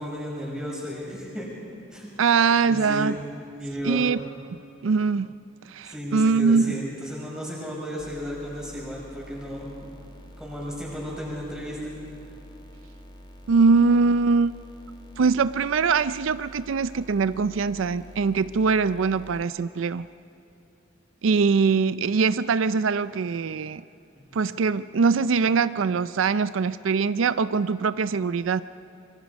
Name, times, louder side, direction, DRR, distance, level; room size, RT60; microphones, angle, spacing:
voice 1, 0.0-1.5 1.9-2.1 2.7-3.1 3.6-4.0 5.8-9.7 10.4-11.9, equal, 5° right, -5 dB, 6.4 m, -34 dB
voice 2, 2.2-3.2 3.8-4.2 4.5-5.3 5.7-6.7 13.5-14.5 15.2-20.1 21.2-23.8 24.3-28.6, right 5 dB, 80° right, 15 dB, 0.5 m, -22 dB
sound 1, 8.0-19.4, equal, 20° left, 1.3 m, -47 dB
26.0 x 24.0 x 5.3 m, 2.8 s
head